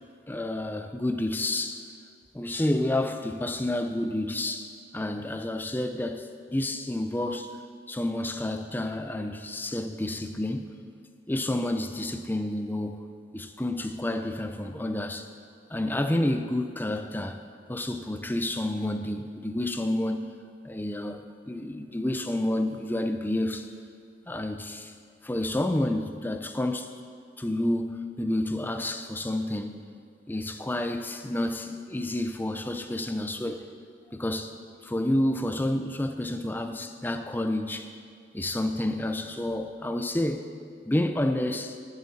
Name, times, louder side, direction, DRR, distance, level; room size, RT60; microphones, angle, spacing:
voice 1, 0.3-1.9 2.3-7.6 7.9-10.7 11.3-13.0 13.3-15.3 15.7-17.4 17.7-20.4 20.6-23.7 24.3-24.9 25.2-26.9 27.4-29.8 30.3-33.6 34.1-37.9 38.3-40.5 40.9-41.8, left 1 dB, 10° left, 7 dB, 0.5 m, -29 dB
14.5 x 8.0 x 4.2 m, 2.2 s
head